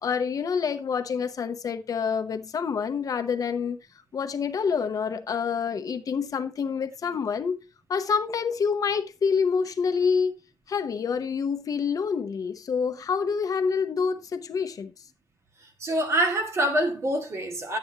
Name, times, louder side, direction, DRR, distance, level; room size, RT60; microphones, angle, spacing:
voice 1, 0.0-3.8 4.1-7.6 7.9-10.4 10.7-14.9, left 6 dB, 60° left, 0.9 m, -27 dB
voice 2, 15.8-17.8, right 1 dB, 45° right, 2.1 m, -25 dB
11.5 x 8.5 x 2.9 m
wide cardioid pair, 165°, 7 cm